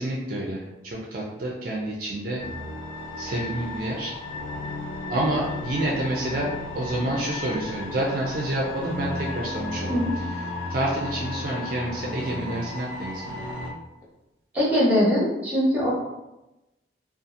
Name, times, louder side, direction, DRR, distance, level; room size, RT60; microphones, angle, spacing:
voice 1, 0.0-2.4 3.2-4.1 5.1-10.0 10.7-13.3, right 1 dB, 45° right, -3 dB, 0.4 m, -28 dB
sound 1, 2.4-13.7, left 2 dB, 90° left, 0.5 m, -34 dB
voice 2, 14.5-15.9, equal, 10° right, -7 dB, 0.8 m, -21 dB
2.7 x 2.3 x 2.5 m, 0.97 s
head